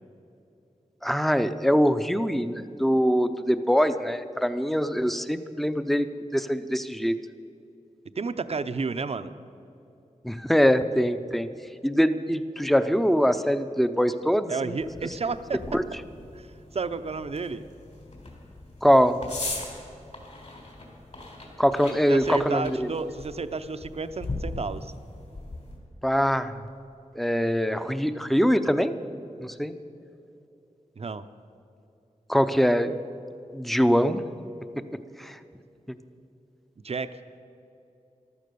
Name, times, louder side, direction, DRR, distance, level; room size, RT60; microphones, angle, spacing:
voice 1, 1.0-7.2 10.2-11.5 11.8-14.8 15.7-15.8 18.8-19.2 21.6-22.9 26.0-26.6 27.1-28.9 29.4-29.7 32.3-33.0 33.5-34.2 34.8-34.9 35.2-35.4 35.9-36.0, equal, ahead, 11 dB, 0.6 m, -23 dB
voice 2, 8.2-9.3 14.5-15.8 16.3-16.5 16.7-17.6 22.1-24.9 31.0-31.2 36.8-37.1, right 4 dB, 50° right, 12 dB, 0.6 m, -31 dB
sound 1, 14.8-25.8, left 2 dB, 55° left, 3.7 m, -40 dB
14.0 x 12.5 x 6.9 m, 2.8 s
wide cardioid pair, 95°, 13 cm